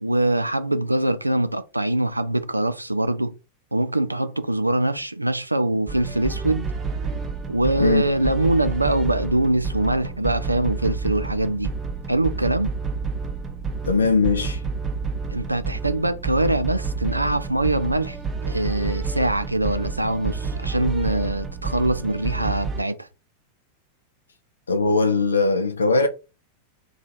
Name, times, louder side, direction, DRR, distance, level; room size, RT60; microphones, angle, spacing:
voice 1, 0.0-3.3 3.7-6.7 7.5-11.7 12.1-12.7 15.3-18.2 18.5-23.1, right 1 dB, 85° right, 0.3 m, -23 dB
sound 1, 5.9-22.8, right 4 dB, 25° right, 0.6 m, -29 dB
voice 2, 13.9-14.6 24.7-26.1, left 3 dB, 75° left, 0.4 m, -20 dB
2.8 x 2.4 x 3.9 m
figure-of-eight pair, 90°, 0 cm